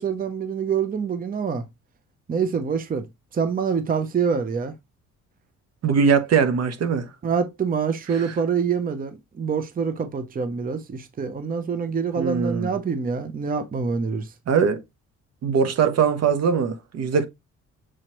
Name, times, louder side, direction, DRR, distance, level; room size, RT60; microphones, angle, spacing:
voice 1, 0.0-1.6 2.3-3.1 3.3-4.7 7.2-14.3, right 6 dB, 30° right, 0.6 m, -26 dB
voice 2, 5.8-7.1 8.1-8.3 12.2-12.7 14.5-14.8 15.4-17.2, right 6 dB, 55° right, 0.9 m, -21 dB
6.3 x 2.9 x 2.9 m
cardioid pair, 90°, 30 cm